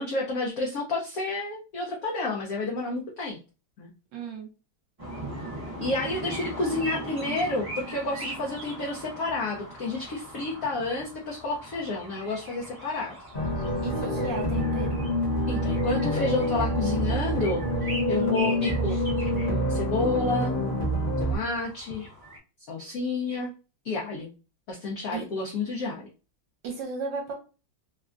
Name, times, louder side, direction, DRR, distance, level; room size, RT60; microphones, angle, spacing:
voice 1, 0.0-3.4 3.8-3.9 5.8-13.2 15.5-17.6 18.1-19.0 19.3-20.5 21.2-22.1 22.7-23.5 23.8-24.3 24.7-26.0, left 2 dB, 80° left, -2 dB, 0.7 m, -30 dB
voice 2, 4.1-4.5 13.8-15.0 25.1-25.2 26.6-27.3, right 5 dB, 65° right, 1 dB, 1.4 m, -35 dB
sound 1, 5.0-22.4, right 1 dB, 25° right, 0.5 m, -41 dB
sound 2, 13.3-21.4, equal, 35° left, 0.8 m, -27 dB
3.6 x 2.2 x 2.4 m, 0.32 s
omnidirectional pair, 2.3 m